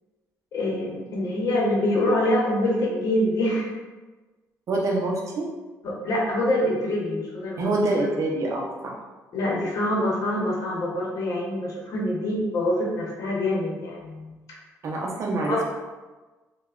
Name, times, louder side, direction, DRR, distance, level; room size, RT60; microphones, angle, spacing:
voice 1, 0.5-3.7 5.8-7.7 9.3-14.6 15.5-15.6, left 1 dB, 65° left, -3 dB, 0.8 m, -25 dB
voice 2, 4.7-5.5 7.6-9.0 14.8-15.6, right 2 dB, 55° right, -1 dB, 0.6 m, -26 dB
3.2 x 2.2 x 2.3 m, 1.2 s
cardioid pair, 110°, 6 cm